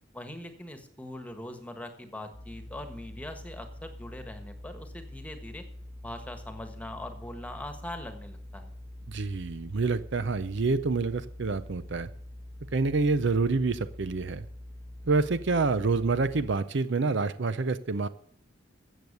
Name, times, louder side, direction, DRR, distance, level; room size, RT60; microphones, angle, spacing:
voice 1, 0.1-5.6 6.0-8.7, left 1 dB, 5° left, 7 dB, 1.4 m, -41 dB
sound 1, 2.3-16.6, left 1 dB, 15° right, 2.0 m, -45 dB
voice 2, 9.1-12.1 12.7-14.5 15.1-18.1, right 3 dB, 55° right, 14 dB, 0.6 m, -27 dB
14.0 x 7.9 x 6.7 m, 0.62 s
head